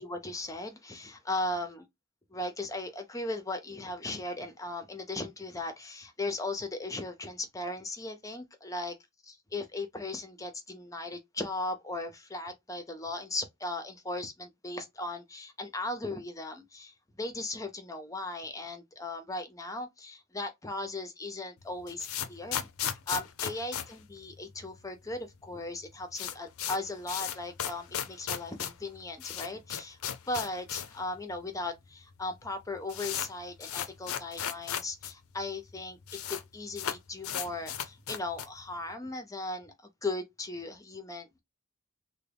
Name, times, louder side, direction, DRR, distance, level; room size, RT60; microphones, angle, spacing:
voice 1, 0.0-1.8 2.3-8.9 9.3-30.0 30.3-36.0 36.3-39.7 40.0-41.4, left 2 dB, 15° left, 0.6 m, -37 dB
sound 1, 21.6-24.9 25.1-25.2 25.4-25.5 25.8-31.0 31.3-31.4 32.1-32.2 32.4-35.1 35.4-35.5 35.7-36.4 36.7-38.6, left 9 dB, 80° left, 0.5 m, -36 dB
3.5 x 2.2 x 3.3 m
head